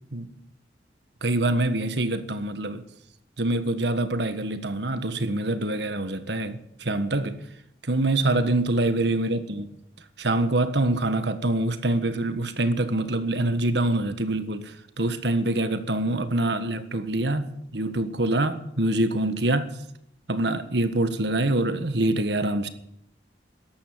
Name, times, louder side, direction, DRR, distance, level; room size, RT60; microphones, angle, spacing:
voice 1, 1.2-2.9 3.4-7.4 7.9-9.7 10.2-14.7 15.0-19.8 20.3-22.7, right 2 dB, 70° right, 1.4 m, -25 dB
13.5 x 11.5 x 9.3 m
head